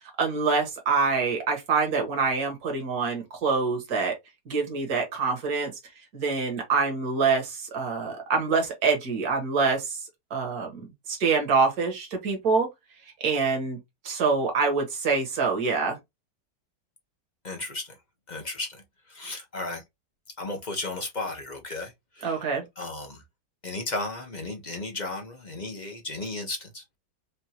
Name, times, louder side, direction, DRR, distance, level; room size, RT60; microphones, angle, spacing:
voice 1, 0.2-4.2 4.5-5.7 6.1-10.0 10.3-12.7 13.2-13.8 14.0-16.0 22.2-22.6, right 4 dB, 55° right, 2.0 m, -25 dB
voice 2, 17.4-18.0 18.3-19.8 20.4-22.4 22.8-23.2 23.6-27.0, left 2 dB, 35° left, 0.8 m, -35 dB
5.3 x 2.6 x 2.9 m
omnidirectional pair, 2.0 m